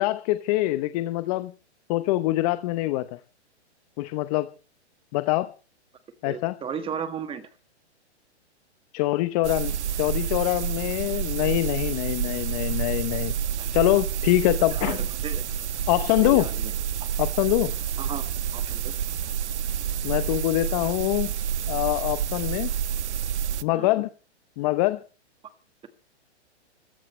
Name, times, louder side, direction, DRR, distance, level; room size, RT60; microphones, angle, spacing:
voice 1, 0.0-1.5 1.9-3.2 4.0-4.5 5.1-5.5 6.2-6.6 8.9-13.3 13.7-15.0 15.9-16.5 17.2-17.7 20.0-21.3 21.7-22.7 23.6-24.1 24.6-25.0, left 17 dB, 35° left, 12 dB, 0.9 m, -24 dB
voice 2, 6.2-7.5 13.6-13.7 14.7-15.4 16.2-16.7 18.0-18.2 18.5-18.9 23.7-23.9, right 7 dB, 15° right, 9 dB, 1.7 m, -35 dB
sound 1, 9.4-23.6, right 9 dB, 75° right, 1.1 m, -29 dB
25.0 x 14.5 x 3.3 m, 0.35 s
hypercardioid pair, 140°, 35 cm